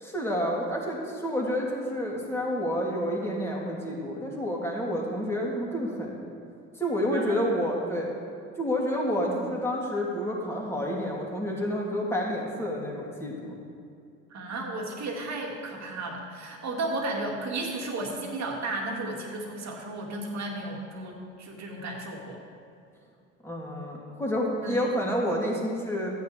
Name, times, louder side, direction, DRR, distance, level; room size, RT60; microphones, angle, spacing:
voice 1, 0.0-6.2 6.8-8.1 8.6-13.6 23.4-26.1, equal, 5° left, -3 dB, 2.6 m, -29 dB
voice 2, 7.1-7.4 14.3-22.4 24.6-24.8, right 2 dB, 45° right, 0 dB, 2.1 m, -34 dB
14.0 x 9.2 x 3.3 m, 2.5 s
hypercardioid pair, 65°, 40 cm